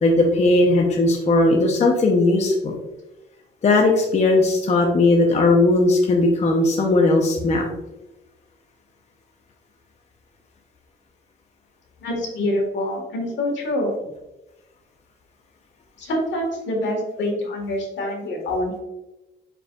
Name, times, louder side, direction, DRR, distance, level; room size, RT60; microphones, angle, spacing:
voice 1, 0.0-2.7 3.6-7.6, left 2 dB, 35° left, 0 dB, 0.6 m, -18 dB
voice 2, 12.0-13.9 16.0-18.8, left 1 dB, 75° left, 0 dB, 1.5 m, -25 dB
5.0 x 4.6 x 2.3 m, 1.0 s
cardioid pair, 125°, 19 cm